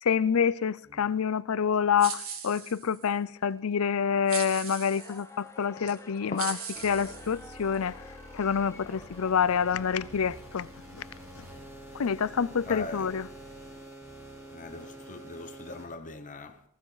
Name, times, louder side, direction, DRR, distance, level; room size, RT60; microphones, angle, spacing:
voice 1, 0.0-6.6 6.8-8.0 8.3-10.7 11.9-13.3, left 7 dB, 75° left, 0.5 m, -27 dB
sound 1, 2.0-3.1 4.3-5.2 5.9-6.0 6.4-7.8, right 7 dB, 70° right, 2.0 m, -39 dB
sound 2, 4.9-10.1, left 2 dB, 15° left, 1.1 m, -50 dB
sound 3, 6.7-15.8, right 1 dB, 10° right, 3.7 m, -47 dB
voice 2, 12.6-13.1 14.5-16.6, left 3 dB, 35° left, 1.0 m, -41 dB
19.5 x 15.0 x 4.0 m
head